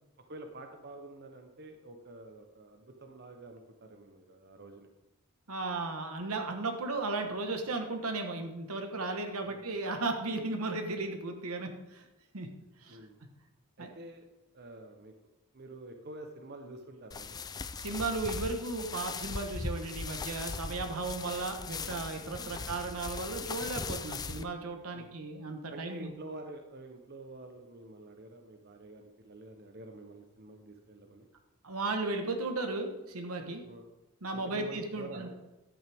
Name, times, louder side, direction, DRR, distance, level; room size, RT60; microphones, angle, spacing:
voice 1, 0.3-4.9 9.4-9.6 12.9-13.2 13.8-14.3 14.5-15.1 15.5-17.4 22.4-22.7 24.9-25.1 25.7-31.3 33.6-33.9 34.3-35.4, right 2 dB, 50° right, 5 dB, 0.8 m, -48 dB
voice 2, 5.5-12.0 12.3-12.5 12.8-13.0 13.8-13.9 17.8-26.1 31.6-33.6 34.2-35.3, right 3 dB, 85° right, 5 dB, 1.2 m, -35 dB
sound 1, 17.1-24.4, left 4 dB, 20° left, 0.3 m, -39 dB
11.0 x 8.8 x 3.5 m, 0.99 s
head